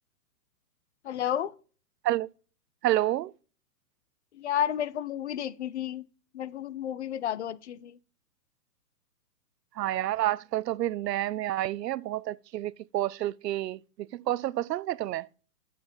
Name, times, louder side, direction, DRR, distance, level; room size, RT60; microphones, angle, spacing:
voice 1, 1.0-1.5 4.3-6.0 6.3-8.0, left 10 dB, 45° left, 0.5 m, -31 dB
voice 2, 2.8-3.3 9.8-13.8 14.3-15.3, right 14 dB, 85° right, 0.6 m, -29 dB
8.3 x 6.8 x 3.8 m
hypercardioid pair, 160°, 48 cm